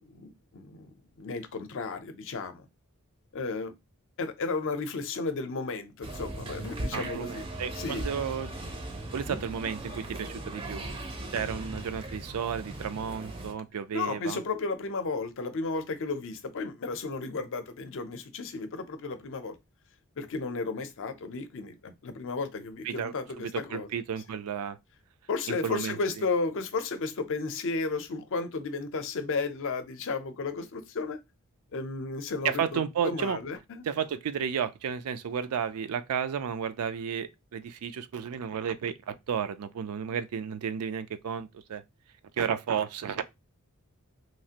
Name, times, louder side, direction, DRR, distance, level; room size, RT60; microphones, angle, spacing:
voice 1, 0.0-2.7 3.3-3.7 4.2-8.1 13.9-19.5 20.2-23.9 25.3-31.2 31.7-33.9, left 4 dB, 60° left, 0.5 m, -33 dB
sound 1, 6.0-13.5, right 1 dB, 25° right, 0.5 m, -38 dB
voice 2, 6.9-8.5 9.1-10.9 11.3-14.4 22.8-24.8 25.5-25.9 32.4-33.4 33.8-41.8 42.4-43.2, right 7 dB, 85° right, 0.4 m, -32 dB
3.0 x 2.4 x 2.8 m
head